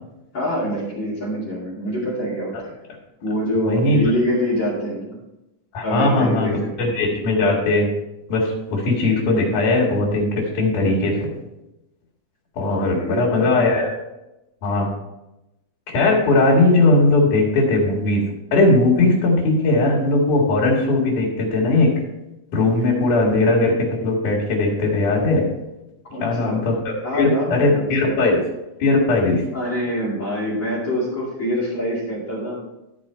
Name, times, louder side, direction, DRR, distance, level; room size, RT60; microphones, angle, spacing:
voice 1, 0.3-2.7 3.2-5.2 5.8-6.7 12.8-13.5 26.1-26.7 27.0-28.2 29.5-32.6, equal, 40° left, -6 dB, 2.9 m, -25 dB
voice 2, 3.6-4.0 5.7-6.5 6.8-7.9 8.3-11.3 12.6-13.9 14.6-14.9 15.9-18.3 18.5-21.9 22.5-25.5 26.2-28.4 28.8-29.4, left 2 dB, 80° left, -5 dB, 3.5 m, -19 dB
13.5 x 4.9 x 4.3 m, 0.94 s
omnidirectional pair, 3.6 m